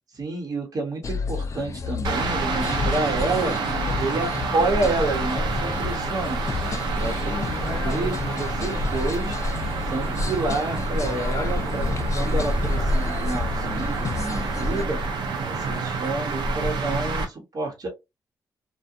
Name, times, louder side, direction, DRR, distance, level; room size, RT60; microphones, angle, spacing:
voice 1, 0.1-3.6 4.0-6.4 6.9-9.4 9.8-11.9 12.1-15.0 15.5-17.9, right 2 dB, 50° right, 0.9 m, -29 dB
sound 1, 1.0-14.9, left 6 dB, 40° left, 0.4 m, -32 dB
sound 2, 2.0-17.2, right 2 dB, 75° right, 0.7 m, -27 dB
2.4 x 2.1 x 2.6 m
supercardioid pair, 60°, 8 cm